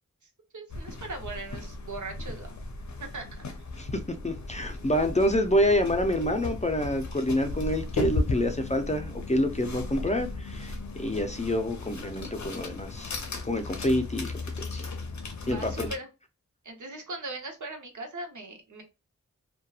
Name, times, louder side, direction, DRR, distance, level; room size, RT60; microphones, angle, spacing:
voice 1, 0.5-2.6 3.0-3.4 15.4-16.1 16.6-18.8, right 2 dB, 70° right, 0.8 m, -39 dB
sound 1, 0.7-16.0, left 3 dB, 65° left, 0.6 m, -36 dB
voice 2, 4.2-13.2 13.4-14.3 14.6-14.9 15.5-15.9, left 1 dB, 20° left, 0.5 m, -27 dB
2.7 x 2.2 x 2.3 m
wide cardioid pair, 45°, 31 cm